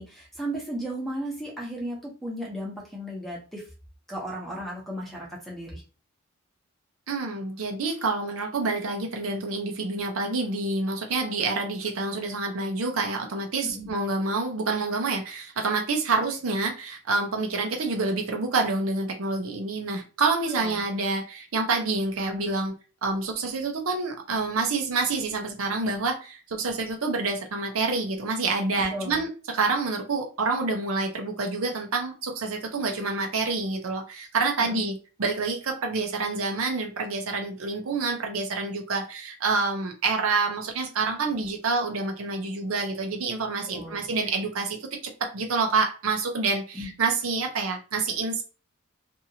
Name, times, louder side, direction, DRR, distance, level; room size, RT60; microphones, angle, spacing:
voice 1, 0.0-3.6 4.1-5.8 13.6-13.9 20.5-20.8 28.8-29.2 34.6-34.8 43.7-44.1 46.7-46.9, right 1 dB, ahead, -3 dB, 0.8 m, -35 dB
voice 2, 7.1-22.7 23.0-44.8 45.0-48.4, right 3 dB, 75° right, 3 dB, 0.6 m, -27 dB
2.8 x 2.5 x 2.7 m, 0.34 s
head